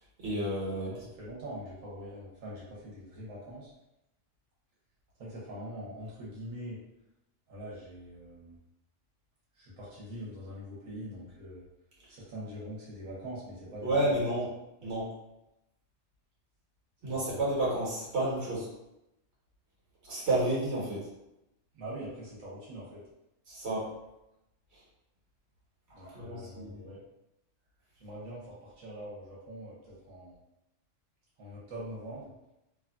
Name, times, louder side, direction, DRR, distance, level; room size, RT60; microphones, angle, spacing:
voice 1, 0.2-0.9 13.8-14.5 14.8-15.1 17.0-18.7 20.0-21.1 23.5-23.9 26.0-26.8, right 1 dB, 60° right, -7 dB, 1.4 m, -30 dB
voice 2, 0.7-3.7 5.2-6.8 7.5-8.6 9.5-11.6 12.1-14.0 17.0-17.4 21.7-23.0 25.9-27.0 28.0-30.3 31.4-32.3, equal, 90° right, -7 dB, 1.3 m, -43 dB
3.1 x 2.5 x 2.2 m, 0.89 s
omnidirectional pair, 1.3 m